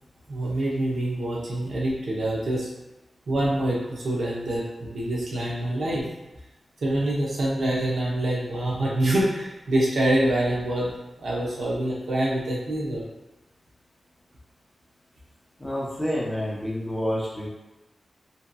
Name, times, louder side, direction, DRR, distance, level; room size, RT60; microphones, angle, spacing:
voice 1, 0.3-2.7 3.3-6.1 6.8-10.9 11.2-13.0, right 1 dB, 75° right, -5 dB, 0.7 m, -25 dB
voice 2, 15.6-17.5, equal, 10° left, -7 dB, 0.7 m, -28 dB
2.7 x 2.6 x 2.2 m, 1.1 s
wide cardioid pair, 145°, 0 cm